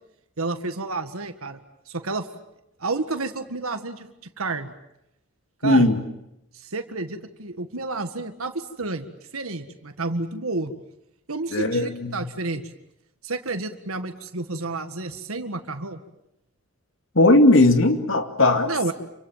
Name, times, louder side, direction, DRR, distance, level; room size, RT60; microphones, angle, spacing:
voice 1, 0.4-1.6 1.9-2.3 2.8-4.1 4.4-4.7 5.6-5.9 6.5-9.1 9.3-10.7 11.3-12.7 13.2-16.0 18.7-18.9, right 3 dB, 75° right, 7 dB, 1.8 m, -30 dB
voice 2, 5.6-6.0 11.5-12.2 17.2-18.7, left 2 dB, 65° left, 6 dB, 2.5 m, -17 dB
28.5 x 24.0 x 7.4 m, 0.82 s
head